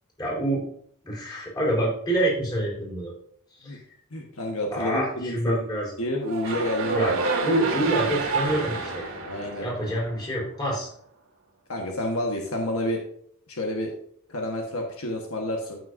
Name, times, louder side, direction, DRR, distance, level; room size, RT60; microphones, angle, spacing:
voice 1, 0.2-0.6 1.0-3.1 3.5-3.8 4.7-5.9 6.9-7.1 7.4-9.1 9.6-10.9, right 1 dB, 20° left, -3 dB, 3.9 m, -27 dB
voice 2, 4.1-5.6 6.0-7.2 9.2-9.7 11.7-13.0 13.5-13.9 14.3-15.8, left 1 dB, 70° left, 1 dB, 1.3 m, -29 dB
sound 1, 6.2-10.4, right 4 dB, 70° right, 1.9 m, -28 dB
14.5 x 6.3 x 2.6 m, 0.65 s
head